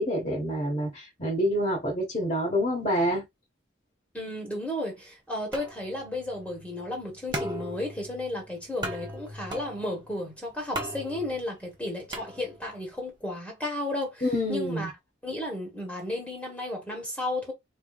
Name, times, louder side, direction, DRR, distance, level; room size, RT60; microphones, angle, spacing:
voice 1, 0.0-3.2 14.2-14.9, equal, 35° left, 1.4 m, -27 dB
voice 2, 4.1-14.9 15.2-17.5, left 1 dB, 5° left, 1.3 m, -33 dB
sound 1, 5.5-12.9, right 1 dB, 20° right, 1.0 m, -39 dB
4.4 x 3.5 x 2.4 m
head